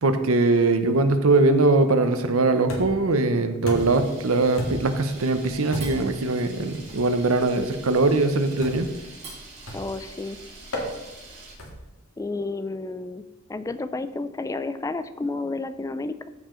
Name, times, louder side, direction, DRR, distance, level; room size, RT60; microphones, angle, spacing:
voice 1, 0.0-8.9, right 3 dB, 85° right, 8 dB, 0.8 m, -21 dB
sound 1, 2.7-3.1 3.7-4.1 4.6-5.0 5.7-6.1 6.9-7.1 8.6-9.0 9.7-10.0 10.7-10.9 11.6-11.9, equal, 80° left, 1.9 m, -33 dB
Camera, 3.7-11.5, right 3 dB, 30° right, 3.4 m, -44 dB
voice 2, 9.7-10.4 12.2-13.2 13.5-16.3, left 3 dB, 15° left, 12 dB, 0.3 m, -31 dB
13.5 x 4.8 x 3.8 m, 1.1 s
head